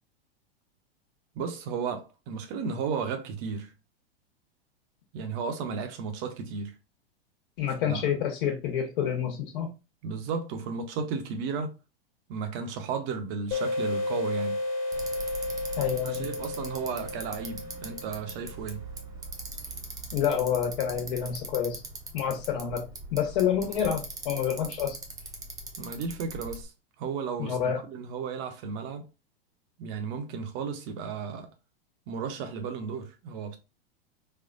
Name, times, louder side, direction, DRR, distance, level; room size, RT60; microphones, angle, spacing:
voice 1, 1.3-3.7 5.1-6.7 7.8-8.0 10.0-11.7 12.3-14.6 16.1-18.8 25.8-26.7 27.0-29.0 29.8-31.5 32.1-33.6, right 5 dB, 45° right, 0.8 m, -34 dB
voice 2, 7.6-9.7 15.8-16.3 20.1-21.8 22.1-25.0 27.4-27.8, left 8 dB, 60° left, 1.3 m, -28 dB
sound 1, 13.5-18.8, left 2 dB, 40° left, 1.4 m, -33 dB
Bicycle, 14.9-26.6, right 2 dB, 10° right, 0.8 m, -41 dB
4.2 x 2.3 x 2.5 m
hypercardioid pair, 100°, 30 cm